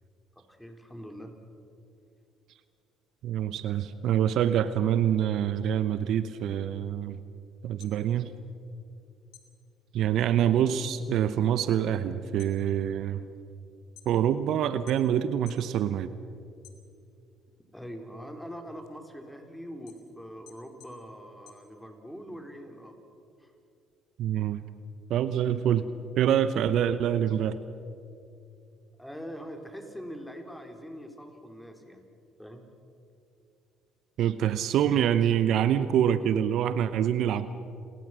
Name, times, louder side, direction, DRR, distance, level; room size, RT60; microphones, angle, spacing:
voice 1, 0.4-1.3 17.7-22.9 23.4-23.5 29.0-32.1 32.4-32.7, equal, 5° left, 4 dB, 4.4 m, -43 dB
voice 2, 3.2-7.2 7.6-8.3 9.9-13.2 14.1-16.1 24.2-24.6 25.1-25.8 26.2-27.6 34.2-37.5, right 10 dB, 65° right, 13 dB, 0.8 m, -25 dB
sound 1, 7.6-9.0 9.3-11.1 11.4-11.9 12.2-14.4 14.9-15.7 16.1-17.3 17.7-22.3, left 10 dB, 70° left, 3.1 m, -56 dB
29.5 x 21.0 x 6.2 m, 2.5 s
hypercardioid pair, 60°, 0 cm